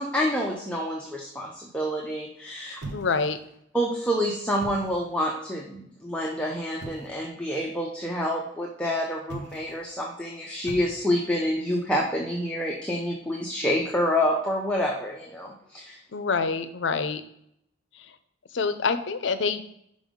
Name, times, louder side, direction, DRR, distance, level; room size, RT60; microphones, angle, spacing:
voice 1, 0.0-2.8 3.7-16.0, equal, 5° left, -2 dB, 0.6 m, -28 dB
sound 1, 2.8-3.6 4.5-5.2 6.8-7.2 9.2-9.9 10.6-11.4, right 2 dB, 60° right, 0.9 m, -41 dB
voice 2, 2.9-3.4 16.1-17.2 18.0-18.1 18.5-19.7, left 4 dB, 70° left, 11 dB, 0.5 m, -26 dB
5.5 x 5.1 x 3.6 m, 0.73 s
head